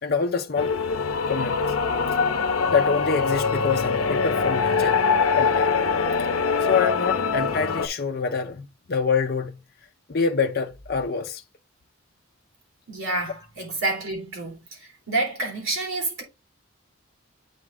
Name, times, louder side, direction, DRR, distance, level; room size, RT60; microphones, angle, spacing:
voice 1, 0.0-0.7 1.3-1.6 2.7-5.0 5.3-5.7 6.6-9.6 10.1-11.4, left 5 dB, 45° left, 0.6 m, -26 dB
sound 1, 0.6-7.9, left 5 dB, 85° left, 0.7 m, -23 dB
voice 2, 12.9-16.2, right 2 dB, 75° right, 3.0 m, -29 dB
8.3 x 3.6 x 3.4 m
head